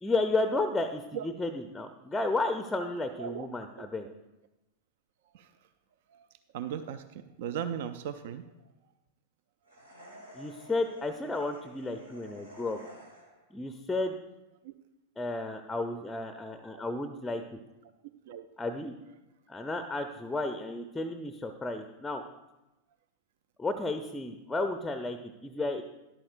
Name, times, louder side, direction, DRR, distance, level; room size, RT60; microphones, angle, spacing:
voice 1, 0.0-4.1 10.3-12.8 13.5-14.1 15.2-17.4 18.6-18.9 19.5-22.2 23.6-25.8, left 2 dB, 10° left, 7 dB, 0.5 m, -32 dB
voice 2, 6.5-8.4 14.6-14.7 16.7-16.8 18.3-18.4, right 8 dB, 55° right, 11 dB, 0.4 m, -37 dB
sound 1, 9.7-13.5, equal, 80° right, 1.7 m, -51 dB
13.0 x 11.0 x 2.4 m, 0.98 s
figure-of-eight pair, 90°, 0 cm